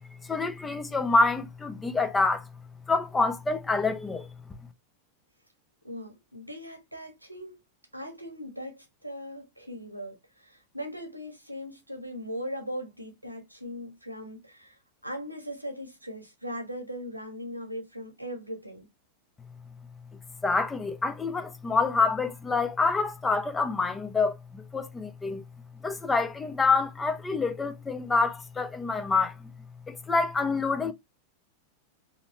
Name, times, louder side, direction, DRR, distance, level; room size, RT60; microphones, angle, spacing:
voice 1, 0.2-2.5 2.9-4.3 20.4-25.4 25.8-29.5 29.9-30.9, left 3 dB, 15° left, 0.6 m, -27 dB
voice 2, 5.8-7.6 7.9-18.9, equal, 90° right, 1.1 m, -39 dB
3.9 x 3.0 x 3.0 m
figure-of-eight pair, 90°, 0 cm